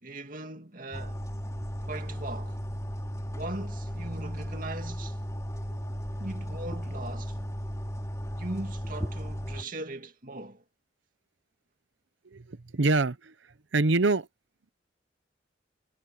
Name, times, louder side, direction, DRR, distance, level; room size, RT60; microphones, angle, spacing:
voice 1, 0.0-1.2 1.8-2.6 3.3-5.2 6.2-7.4 8.4-10.6, right 2 dB, 45° right, 2.5 m, -39 dB
sound 1, 0.9-9.6, equal, 15° left, 3.4 m, -35 dB
voice 2, 12.3-13.3 13.7-14.3, right 3 dB, 85° right, 0.9 m, -25 dB
head